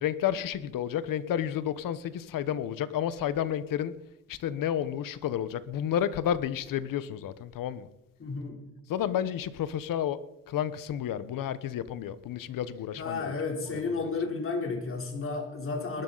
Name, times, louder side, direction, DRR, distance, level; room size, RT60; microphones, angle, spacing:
voice 1, 0.0-3.9 4.3-7.9 8.9-10.2 10.5-13.3 13.7-14.1, left 10 dB, 85° left, 14 dB, 1.2 m, -31 dB
voice 2, 8.2-8.6 13.0-16.0, left 4 dB, 40° left, 2 dB, 3.7 m, -32 dB
20.5 x 12.0 x 4.1 m, 0.82 s
cardioid pair, 95°, 33 cm